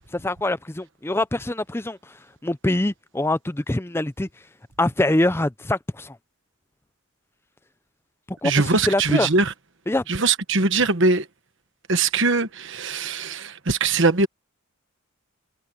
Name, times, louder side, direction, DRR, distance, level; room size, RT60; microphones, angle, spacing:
voice 1, 0.1-2.0 2.4-4.3 4.8-6.2 8.3-8.5 8.9-9.3 9.9-10.0, left 1 dB, 10° left, 0.5 m, -24 dB
voice 2, 8.4-9.5 10.1-11.3 11.9-14.3, right 3 dB, 55° right, 1.3 m, -21 dB
head